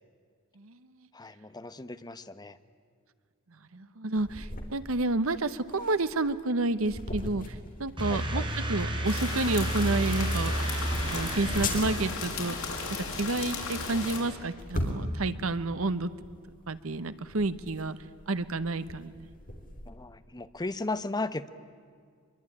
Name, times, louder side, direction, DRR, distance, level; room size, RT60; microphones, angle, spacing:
voice 1, 1.1-2.6 8.1-8.5 19.9-21.5, left 2 dB, 20° left, 12 dB, 0.9 m, -36 dB
voice 2, 3.7-10.5 10.9-12.5 12.9-16.1 16.7-18.0 18.3-19.1, right 2 dB, 80° right, 13 dB, 1.1 m, -30 dB
sound 1, 4.2-19.9, left 1 dB, 40° left, 3.7 m, -40 dB
sound 2, 8.0-12.7, right 1 dB, 25° right, 3.3 m, -32 dB
sound 3, 9.0-14.2, left 4 dB, 85° left, 6.3 m, -35 dB
24.5 x 23.0 x 9.9 m, 2.1 s
head